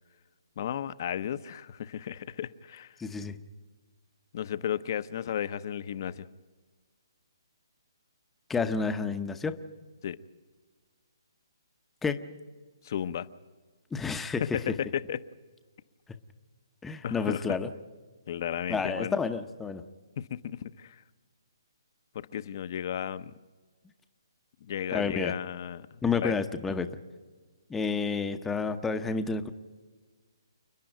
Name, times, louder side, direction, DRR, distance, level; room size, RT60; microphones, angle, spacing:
voice 1, 0.6-2.9 4.3-6.3 10.0-10.2 12.8-13.3 14.4-14.5 14.8-15.2 17.0-17.4 18.3-19.2 20.2-21.0 22.1-23.3 24.6-26.3, left 9 dB, 45° left, 15 dB, 0.8 m, -34 dB
voice 2, 3.0-3.4 8.5-9.6 12.0-12.2 13.9-14.6 16.8-17.7 18.7-19.8 24.9-25.3 26.0-26.9 27.7-29.5, left 5 dB, 5° left, 9 dB, 0.8 m, -30 dB
29.0 x 10.0 x 9.1 m, 1.5 s
hypercardioid pair, 155°, 3 cm